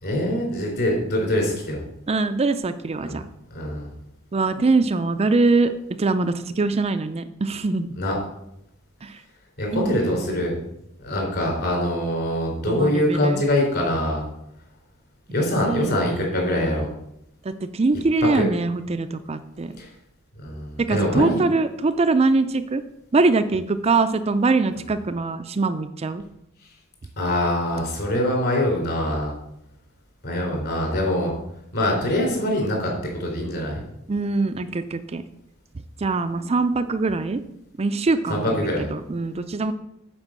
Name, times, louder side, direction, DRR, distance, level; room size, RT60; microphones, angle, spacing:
voice 1, 0.0-1.8 3.0-3.1 3.5-3.9 8.0-8.2 9.6-10.6 11.0-14.2 15.3-16.9 18.3-18.5 19.8-19.9 20.4-21.4 27.2-29.3 30.2-31.3 31.7-32.9 33.2-33.8 38.3-38.9, left 1 dB, 55° left, -1 dB, 3.9 m, -23 dB
voice 2, 2.1-3.2 4.3-5.7 6.0-7.9 9.0-9.2 9.7-10.1 12.7-13.4 15.3-16.9 17.4-19.7 20.8-22.8 23.1-26.2 34.1-35.2 36.0-37.4 37.8-39.7, right 3 dB, 30° right, 10 dB, 0.4 m, -23 dB
8.8 x 5.0 x 7.4 m, 0.81 s
head